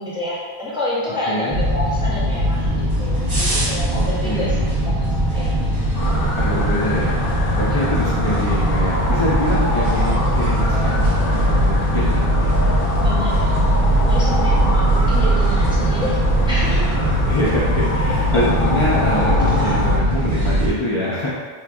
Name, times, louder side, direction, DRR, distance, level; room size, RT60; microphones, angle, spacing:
voice 1, 0.0-4.6 4.9-5.7 7.7-8.1 13.0-16.2 16.5-17.1 19.5-19.9, left 1 dB, 5° right, -8 dB, 0.5 m, -29 dB
sound 1, 1.5-20.7, right 1 dB, 60° right, 1.0 m, -19 dB
voice 2, 3.9-4.7 6.4-7.2 7.6-11.1 11.3-12.6 17.0-21.3, left 1 dB, 50° left, -7 dB, 0.3 m, -25 dB
sound 2, 5.9-20.0, left 1 dB, 65° left, 1.0 m, -26 dB
3.5 x 2.6 x 2.3 m, 1.5 s
omnidirectional pair, 1.0 m